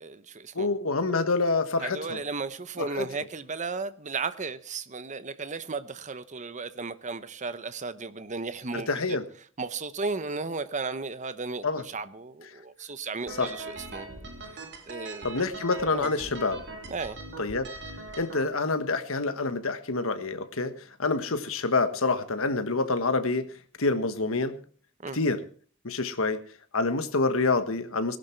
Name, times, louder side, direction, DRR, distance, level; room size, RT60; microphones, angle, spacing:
voice 1, 0.0-0.7 1.8-9.2 9.6-14.1 14.5-15.4 15.9-16.1 16.9-17.2 25.0-25.2, right 4 dB, 35° right, 13 dB, 0.9 m, -35 dB
voice 2, 0.5-2.2 2.8-3.1 8.7-9.2 11.6-11.8 13.3-13.5 15.2-16.6 17.4-17.7 18.2-23.5 23.8-24.6 25.1-25.4 25.8-26.4 26.7-28.2, left 3 dB, 65° left, 10 dB, 1.4 m, -27 dB
sound 1, 13.3-18.4, right 3 dB, 55° right, 2.4 m, -41 dB
19.0 x 12.0 x 4.5 m, 0.43 s
head